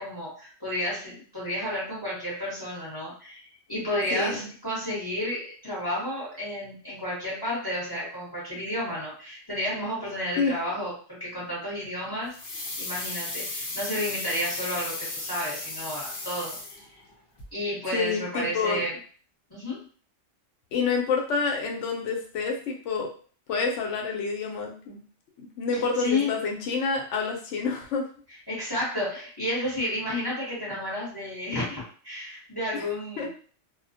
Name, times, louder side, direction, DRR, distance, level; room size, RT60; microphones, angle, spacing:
voice 1, 0.0-16.8 17.5-19.0 19.5-19.9 25.7-26.3 28.5-33.3, left 1 dB, 20° left, -7 dB, 0.9 m, -31 dB
voice 2, 4.1-4.5 10.4-10.5 17.9-18.8 20.7-23.1 23.5-25.0 25.4-28.1 32.7-32.8 33.2-33.3, left 4 dB, 85° left, 1 dB, 0.9 m, -28 dB
sound 1, 12.3-17.1 17.4-17.5, left 2 dB, 55° left, 0.8 m, -35 dB
2.3 x 2.1 x 2.6 m, 0.42 s
omnidirectional pair, 1.2 m